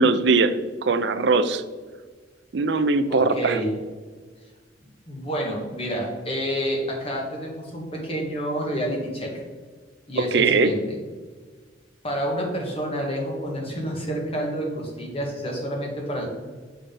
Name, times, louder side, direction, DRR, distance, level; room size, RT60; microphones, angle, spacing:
voice 1, 0.0-1.6 2.5-3.6 10.2-10.7, right 3 dB, 65° right, 12 dB, 0.5 m, -20 dB
voice 2, 3.1-3.7 5.1-9.4 10.1-11.0 12.0-16.3, equal, 30° left, -1 dB, 1.7 m, -29 dB
6.5 x 5.7 x 3.8 m, 1.5 s
head